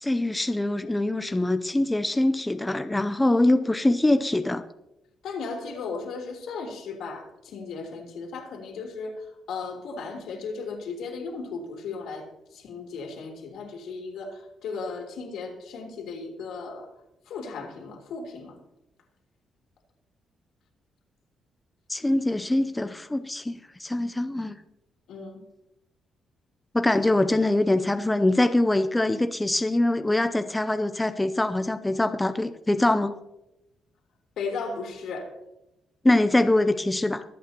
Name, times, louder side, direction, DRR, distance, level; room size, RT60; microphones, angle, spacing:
voice 1, 0.0-4.6 21.9-24.5 26.7-33.1 36.0-37.2, left 1 dB, 10° left, 9 dB, 0.5 m, -23 dB
voice 2, 5.2-12.3 12.5-16.9 17.3-18.6 25.1-25.4 34.4-35.3, left 4 dB, 80° left, 1 dB, 3.1 m, -36 dB
23.5 x 8.5 x 2.9 m, 0.89 s
cardioid pair, 135°, 0 cm